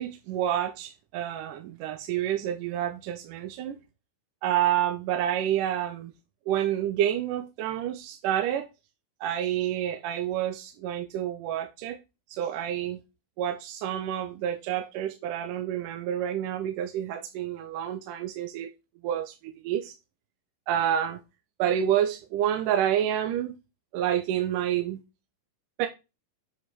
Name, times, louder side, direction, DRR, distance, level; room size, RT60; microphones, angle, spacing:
voice 1, 0.0-3.8 4.4-6.1 6.5-8.7 9.2-12.0 12.3-13.0 13.4-18.7 19.0-19.9 20.7-21.2 21.6-23.6 23.9-25.0 25.8-25.9, right 10 dB, 75° right, 2.2 m, -28 dB
7.7 x 4.8 x 4.1 m
omnidirectional pair, 4.0 m